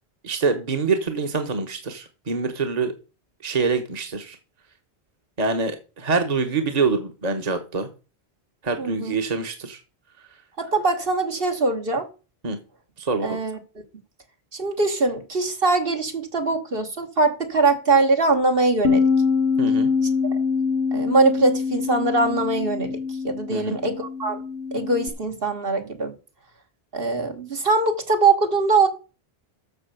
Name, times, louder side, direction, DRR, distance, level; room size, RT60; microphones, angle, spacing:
voice 1, 0.2-2.9 3.4-4.4 5.4-7.9 8.6-9.8 12.4-12.6 13.0-13.4 19.6-19.9 23.5-23.8, right 4 dB, 40° right, 1.3 m, -25 dB
voice 2, 8.8-9.1 10.6-12.1 13.2-13.6 14.5-19.0 20.3-20.4 20.9-23.0 23.2-24.4 24.7-26.1 26.9-28.9, right 3 dB, 65° right, 1.9 m, -22 dB
Bass guitar, 18.8-25.1, left 5 dB, 75° left, 1.3 m, -24 dB
8.3 x 6.7 x 6.9 m
omnidirectional pair, 1.0 m